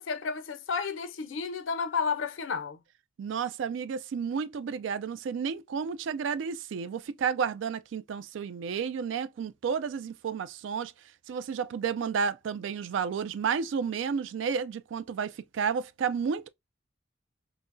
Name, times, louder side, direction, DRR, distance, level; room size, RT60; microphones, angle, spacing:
voice 1, 0.0-2.8, left 5 dB, 85° left, 0.5 m, -32 dB
voice 2, 3.2-10.9 11.3-16.5, right 6 dB, 75° right, 0.3 m, -31 dB
5.9 x 2.0 x 2.5 m
head